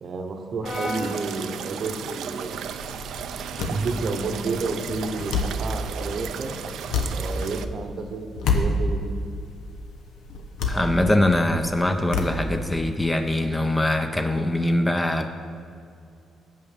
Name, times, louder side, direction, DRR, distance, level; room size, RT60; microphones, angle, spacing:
voice 1, 0.0-2.7 3.6-6.5 7.1-9.1, right 3 dB, 50° right, 6 dB, 0.8 m, -30 dB
Brass instrument, 0.6-4.9, equal, 40° left, 1.8 m, -39 dB
sound 1, 0.6-7.6, right 8 dB, 75° right, 0.4 m, -35 dB
sound 2, 2.4-12.9, left 3 dB, 85° left, 0.8 m, -30 dB
voice 2, 10.7-15.3, left 1 dB, 15° left, 7 dB, 0.5 m, -23 dB
7.4 x 5.6 x 6.6 m, 2.4 s
cardioid pair, 90°, 0 cm